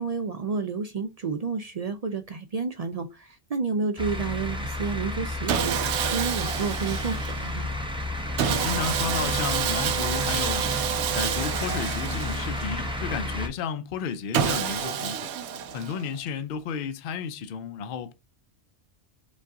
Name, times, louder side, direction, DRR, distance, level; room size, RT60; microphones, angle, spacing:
voice 1, 0.0-5.8 6.1-7.7, right 4 dB, 50° right, 0.4 m, -30 dB
sound 1, 4.0-13.5, left 1 dB, 5° right, 0.7 m, -32 dB
Sawing, 5.5-7.5 8.4-12.9 14.3-16.2, right 8 dB, 80° right, 0.9 m, -28 dB
voice 2, 8.5-10.7 11.1-15.3 15.7-18.1, left 7 dB, 60° left, 0.6 m, -32 dB
5.3 x 2.5 x 3.6 m
omnidirectional pair, 1.1 m